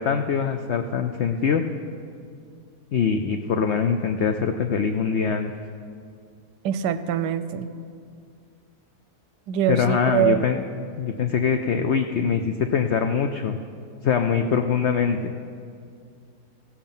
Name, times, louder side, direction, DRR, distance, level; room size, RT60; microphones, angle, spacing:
voice 1, 0.0-1.6 2.9-5.5 9.7-10.6 11.0-13.6 14.0-15.3, left 6 dB, 80° left, 6 dB, 0.6 m, -23 dB
voice 2, 6.6-7.7 9.5-10.4, right 9 dB, 85° right, 12 dB, 1.2 m, -23 dB
16.0 x 7.2 x 5.4 m, 2.3 s
omnidirectional pair, 1.7 m